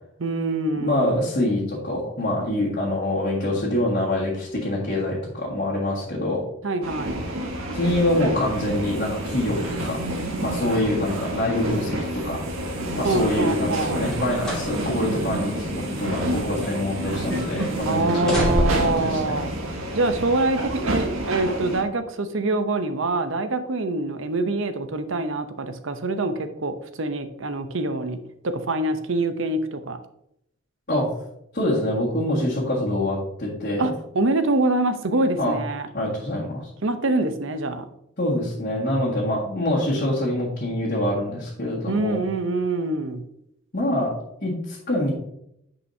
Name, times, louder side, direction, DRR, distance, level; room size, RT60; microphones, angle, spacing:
voice 1, 0.2-1.2 6.6-7.3 13.0-14.1 17.9-19.5 19.9-30.0 33.8-35.9 36.8-37.9 41.9-43.2, right 2 dB, 65° right, 9 dB, 0.7 m, -25 dB
voice 2, 0.8-6.4 7.7-10.0 10.4-12.4 13.0-19.4 30.9-31.1 31.5-33.8 35.4-35.6 35.9-36.7 38.2-42.2 43.7-44.1 44.4-45.1, left 1 dB, 45° left, -6 dB, 1.8 m, -25 dB
sound 1, 6.8-21.8, right 1 dB, 90° right, 1.6 m, -29 dB
sound 2, 14.0-14.7 15.1-15.3 16.0-17.0 17.3-17.7 18.1-19.0 19.9-20.0, equal, 5° left, 2.3 m, -28 dB
9.7 x 5.6 x 2.8 m, 0.77 s
head